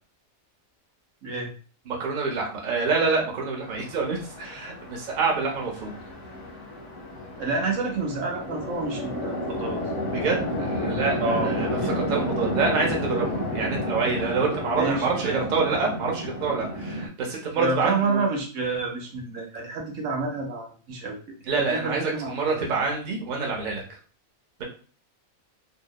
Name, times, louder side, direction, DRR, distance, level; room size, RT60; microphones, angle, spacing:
voice 1, 1.2-1.5 7.4-9.8 11.2-12.0 14.8-15.4 17.6-22.6, right 3 dB, 70° right, 0 dB, 1.0 m, -29 dB
voice 2, 1.9-6.0 10.1-18.2 21.4-23.8, right 4 dB, 50° right, -1 dB, 0.6 m, -27 dB
Chatter / Traffic noise roadway noise / Train, 3.6-17.1, left 1 dB, 55° left, 0.7 m, -31 dB
2.7 x 2.0 x 2.2 m, 0.40 s
omnidirectional pair, 1.4 m